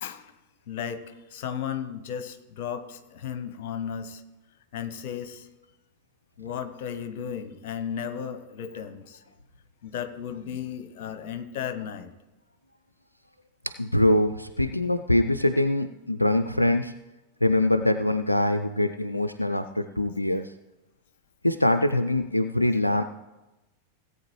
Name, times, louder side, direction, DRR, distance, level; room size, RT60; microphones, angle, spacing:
voice 1, 0.0-0.3 0.7-4.2 4.7-5.5 6.4-9.2 9.8-12.1, left 8 dB, 50° left, 10 dB, 0.9 m, -35 dB
voice 2, 13.8-16.9 17.4-20.5 21.4-23.0, left 1 dB, 85° left, 8 dB, 0.4 m, -23 dB
17.5 x 8.2 x 3.1 m, 1.0 s
figure-of-eight pair, 90°, 0 cm